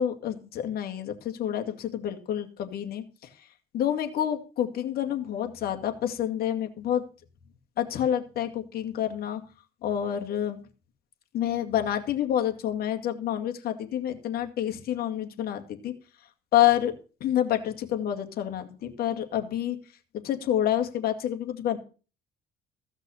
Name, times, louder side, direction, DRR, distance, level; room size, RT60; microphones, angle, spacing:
voice 1, 0.0-3.0 3.7-7.0 7.8-9.4 9.8-10.6 11.3-15.9 16.5-16.9 17.2-19.8 20.2-21.8, left 11 dB, 65° left, 4 dB, 2.3 m, -28 dB
15.5 x 6.0 x 7.1 m, 0.36 s
cardioid pair, 110°, 17 cm